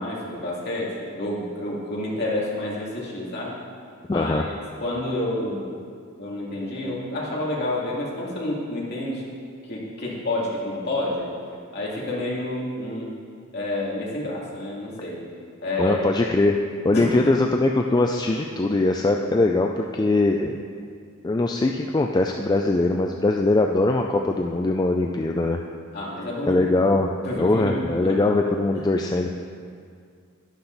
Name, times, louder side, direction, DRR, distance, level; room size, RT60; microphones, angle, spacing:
voice 1, 0.0-3.5 4.1-5.6 6.2-9.2 9.6-11.3 11.7-13.1 13.5-15.2 15.6-16.0 16.9-17.2 25.9-26.7 27.2-28.2 28.7-28.8, left 1 dB, 50° left, -5 dB, 2.5 m, -29 dB
voice 2, 4.1-4.4 15.8-16.6 16.8-20.6 21.2-25.6 26.5-27.1 27.4-29.4, left 2 dB, 20° left, 2 dB, 0.3 m, -21 dB
11.5 x 10.5 x 4.0 m, 2.2 s
head